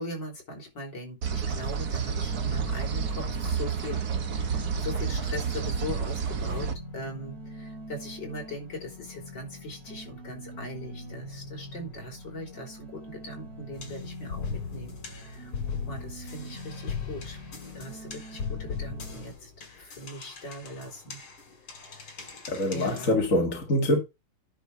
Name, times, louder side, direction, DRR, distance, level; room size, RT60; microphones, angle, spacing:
voice 1, 0.0-17.4 17.7-19.5 19.8-21.2 21.9-22.2 22.7-23.2, left 1 dB, 55° left, 4.3 m, -40 dB
sound 1, 1.2-6.7, right 6 dB, 50° right, 1.6 m, -30 dB
sound 2, 2.1-19.3, equal, 30° right, 3.5 m, -44 dB
sound 3, 13.7-23.1, left 6 dB, 80° left, 3.0 m, -39 dB
voice 2, 22.5-24.0, left 1 dB, 40° left, 2.2 m, -25 dB
10.0 x 5.7 x 4.8 m
omnidirectional pair, 2.3 m